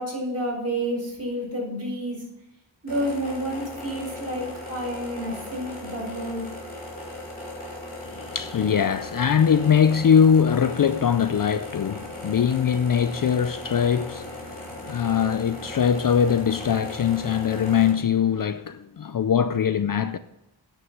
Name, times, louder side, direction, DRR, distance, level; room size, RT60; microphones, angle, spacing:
voice 1, 0.0-2.2 2.8-6.5, equal, 35° right, 5.0 m, -30 dB
sound 1, 2.9-17.9, left 1 dB, 20° left, 4.7 m, -38 dB
voice 2, 8.0-20.2, left 7 dB, 50° left, 0.5 m, -22 dB
9.5 x 6.6 x 7.1 m
wide cardioid pair, 120°, 44 cm